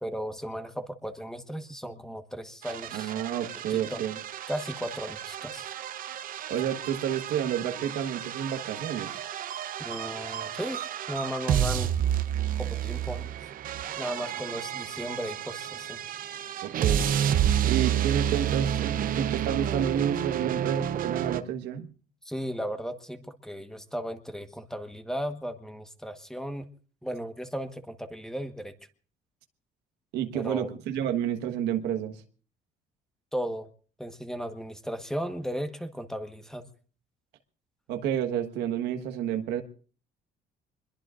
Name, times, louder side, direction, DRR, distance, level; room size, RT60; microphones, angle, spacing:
voice 1, 0.0-3.1 3.7-4.0 4.5-5.7 9.8-11.9 12.6-13.3 14.0-16.0 22.2-26.6 27.0-28.7 30.3-30.7 33.3-33.7 34.0-36.6, equal, 5° left, 8 dB, 1.3 m, -35 dB
sound 1, 2.6-21.4, right 10 dB, 55° right, 0.8 m, -30 dB
voice 2, 2.9-4.2 6.5-9.2 16.6-17.1 17.6-21.9 30.1-32.2 37.9-39.6, right 9 dB, 85° right, 5 dB, 1.4 m, -30 dB
25.5 x 22.0 x 2.5 m, 0.41 s
cardioid pair, 110°, 17 cm